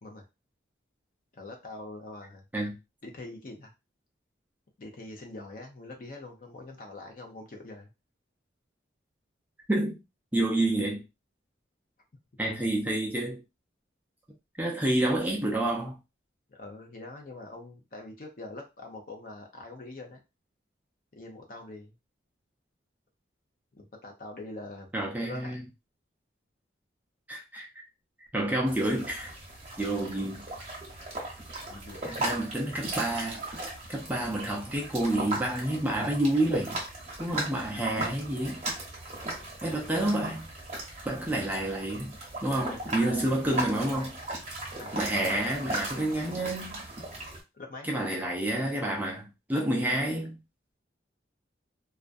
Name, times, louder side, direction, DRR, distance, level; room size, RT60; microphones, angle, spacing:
voice 1, 1.3-2.4 3.0-3.7 4.8-7.9 16.5-20.2 21.1-21.9 23.7-24.9 25.2-25.5 31.7-32.4 42.7-43.3 44.8-45.5 47.5-47.9, left 2 dB, 45° left, 0.5 m, -44 dB
voice 2, 10.3-11.0 12.4-13.4 14.6-16.0 24.9-25.6 27.3-27.7 28.3-29.3 29.8-30.5 32.0-33.5 33.9-36.8 37.2-38.6 39.6-40.5 41.1-44.2 44.9-46.8 47.8-50.4, right 1 dB, 10° right, 0.4 m, -29 dB
sound 1, 28.7-47.4, right 2 dB, 35° right, 0.8 m, -37 dB
2.4 x 2.1 x 2.5 m
head